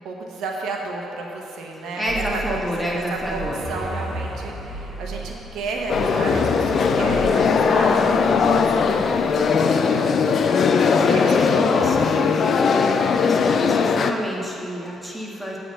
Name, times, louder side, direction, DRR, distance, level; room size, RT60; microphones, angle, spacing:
voice 1, 0.0-12.7, right 3 dB, 80° right, 0 dB, 1.1 m, -32 dB
voice 2, 1.7-3.6 10.9-12.0 13.2-15.6, equal, ahead, -4 dB, 1.8 m, -29 dB
sound 1, 2.1-9.5, right 2 dB, 45° right, 2.0 m, -34 dB
sound 2, 5.9-14.1, left 5 dB, 55° left, 0.5 m, -19 dB
8.5 x 4.9 x 7.5 m, 2.7 s
cardioid pair, 90°, 0 cm